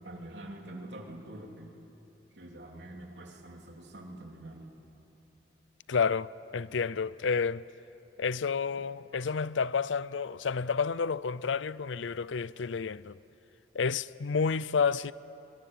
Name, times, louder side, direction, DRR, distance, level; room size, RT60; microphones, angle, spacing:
voice 1, 0.0-1.7 2.3-4.7, right 1 dB, 65° right, 3.2 m, -45 dB
voice 2, 5.9-7.6 8.2-13.2 13.7-15.1, left 5 dB, 80° left, 0.5 m, -30 dB
24.5 x 24.0 x 9.3 m
head